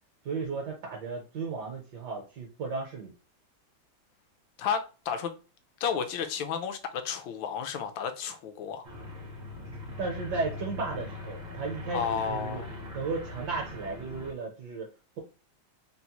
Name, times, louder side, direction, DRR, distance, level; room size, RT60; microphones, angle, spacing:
voice 1, 0.2-3.1 10.0-12.6 12.9-14.9, right 4 dB, 65° right, 1.2 m, -34 dB
voice 2, 4.6-5.3 5.8-8.8 11.9-12.7, left 7 dB, 75° left, 1.2 m, -32 dB
sound 1, 8.8-14.3, left 2 dB, 40° right, 0.6 m, -41 dB
4.0 x 2.0 x 2.8 m
omnidirectional pair, 2.2 m